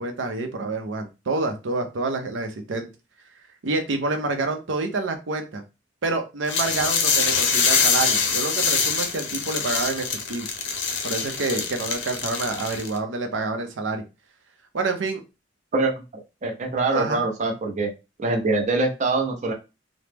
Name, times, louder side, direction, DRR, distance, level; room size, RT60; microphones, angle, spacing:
voice 1, 0.0-2.9 3.6-5.6 6.0-10.5 11.0-14.0 14.7-15.2 16.9-17.2, right 3 dB, 85° right, 5 dB, 0.6 m, -28 dB
sound 1, 6.5-13.0, left 5 dB, 80° left, 0.6 m, -24 dB
voice 2, 16.4-17.9 18.2-19.5, right 3 dB, 40° right, 2 dB, 0.6 m, -23 dB
2.9 x 2.0 x 3.3 m, 0.27 s
head